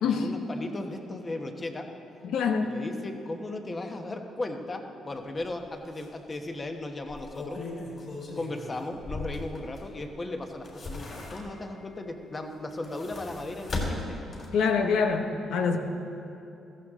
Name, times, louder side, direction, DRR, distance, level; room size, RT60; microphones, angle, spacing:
voice 1, 0.0-1.9 2.6-7.6 8.4-14.2, left 2 dB, 30° left, 4 dB, 1.3 m, -36 dB
voice 2, 2.2-2.7 14.5-15.8, left 5 dB, 85° left, 4 dB, 1.1 m, -25 dB
sound 1, 5.4-5.5 5.9-6.0 7.0-10.0 10.4-11.8 12.6-14.7 15.1-15.2, left 2 dB, 50° left, 3.5 m, -37 dB
15.0 x 14.5 x 3.8 m, 2.7 s
cardioid pair, 90°, 0 cm